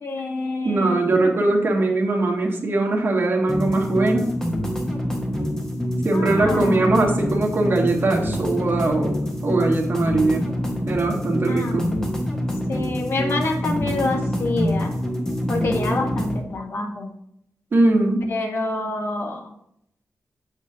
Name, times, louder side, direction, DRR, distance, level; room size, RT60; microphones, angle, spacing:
voice 1, 0.0-1.3 6.1-7.0 11.5-12.0 12.7-14.9 15.5-17.1 18.3-19.5, left 2 dB, 55° left, 2 dB, 1.3 m, -27 dB
voice 2, 0.6-4.3 6.0-9.1 9.4-10.5 10.9-11.9 17.7-18.2, right 2 dB, 50° right, 0 dB, 1.5 m, -21 dB
sound 1, 3.5-16.4, equal, 10° left, 1.4 m, -26 dB
8.1 x 6.5 x 2.8 m, 0.73 s
wide cardioid pair, 130°, 5 cm